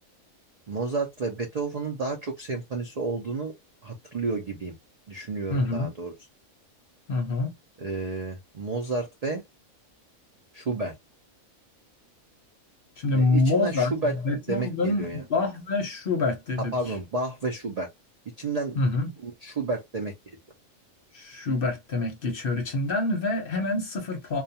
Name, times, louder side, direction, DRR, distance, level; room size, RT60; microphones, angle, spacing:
voice 1, 0.7-3.5 3.8-4.7 5.1-6.1 7.8-9.4 10.5-10.9 13.1-14.1 14.5-15.2 16.6-17.9 18.4-18.8 19.2-20.1, right 3 dB, 80° right, 0.3 m, -31 dB
voice 2, 5.5-5.9 7.1-7.5 13.0-13.9 14.2-16.7 18.7-19.1 21.1-24.4, left 3 dB, 50° left, 0.8 m, -26 dB
2.3 x 2.2 x 2.7 m
omnidirectional pair, 1.4 m